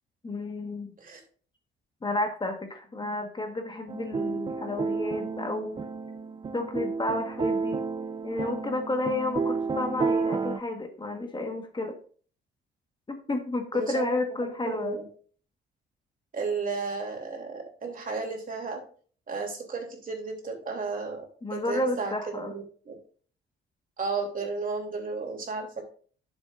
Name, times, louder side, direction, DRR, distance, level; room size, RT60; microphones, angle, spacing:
voice 1, 0.2-0.9 2.0-5.8 6.5-7.8 8.2-12.0 13.1-15.0 21.4-22.5, left 2 dB, 25° left, 4 dB, 1.5 m, -31 dB
sound 1, 3.9-10.6, right 4 dB, 25° right, 0.4 m, -31 dB
voice 2, 13.7-14.1 14.4-15.0 16.3-18.8 19.3-22.9 24.0-25.9, right 4 dB, 45° right, 2 dB, 3.1 m, -33 dB
10.5 x 7.4 x 2.6 m, 0.43 s
cardioid pair, 90°, 20 cm